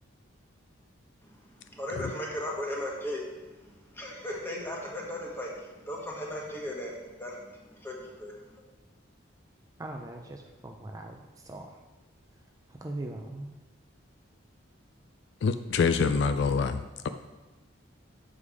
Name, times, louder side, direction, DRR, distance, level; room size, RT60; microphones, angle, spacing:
voice 1, 1.2-8.6, left 1 dB, 10° left, -2 dB, 1.2 m, -37 dB
voice 2, 9.8-11.2 11.5-11.7 12.8-13.5, right 2 dB, 15° right, 2 dB, 0.4 m, -39 dB
voice 3, 15.4-17.1, left 5 dB, 60° left, 9 dB, 0.3 m, -26 dB
7.1 x 4.9 x 4.9 m, 1.2 s
head